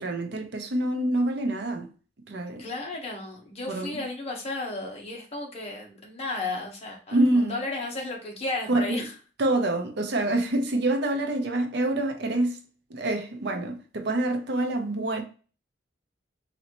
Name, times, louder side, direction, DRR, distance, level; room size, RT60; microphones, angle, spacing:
voice 1, 0.0-1.9 2.3-2.6 3.7-4.0 7.1-7.5 8.7-9.1 9.4-12.6 12.9-15.2, right 1 dB, 65° right, 0.6 m, -26 dB
voice 2, 2.6-9.1, left 2 dB, 35° left, 1.1 m, -34 dB
4.2 x 2.7 x 3.0 m
head